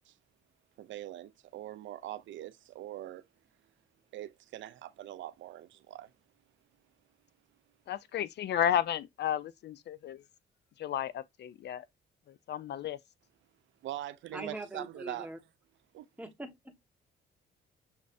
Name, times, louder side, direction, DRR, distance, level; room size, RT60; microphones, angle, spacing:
voice 1, 0.8-3.2 4.1-6.1 13.8-15.3 15.9-16.1, right 13 dB, 70° right, 0.5 m, -42 dB
voice 2, 7.9-10.2 10.8-11.9 12.5-13.0, left 10 dB, 60° left, 0.4 m, -32 dB
voice 3, 14.3-15.4 16.2-16.8, right 2 dB, 5° right, 1.3 m, -42 dB
6.6 x 3.1 x 2.6 m
cardioid pair, 90°, 20 cm